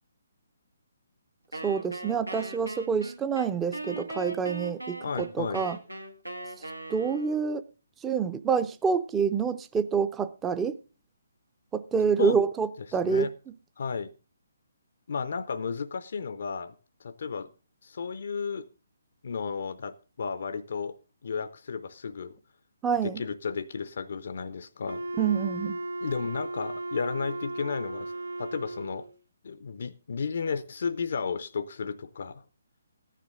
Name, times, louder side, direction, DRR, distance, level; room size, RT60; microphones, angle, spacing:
Wind instrument woodwind instrument, 1.5-7.5, right 2 dB, 85° right, 1.5 m, -39 dB
voice 1, 1.6-5.8 6.9-7.6 8.0-10.7 11.7-13.3 22.8-23.2 25.2-25.8, right 6 dB, 10° right, 0.6 m, -27 dB
voice 2, 5.0-5.6 12.2-12.4 13.0-13.3 13.8-14.1 15.1-16.7 17.0-17.5 17.8-18.7 19.2-21.0 21.2-22.4 23.0-25.1 26.0-28.1 28.4-29.1 29.4-32.4, left 5 dB, 50° left, 0.5 m, -33 dB
Wind instrument woodwind instrument 2, 24.8-29.1, right 2 dB, 70° right, 0.7 m, -36 dB
14.5 x 10.0 x 3.8 m
figure-of-eight pair, 140°, 0 cm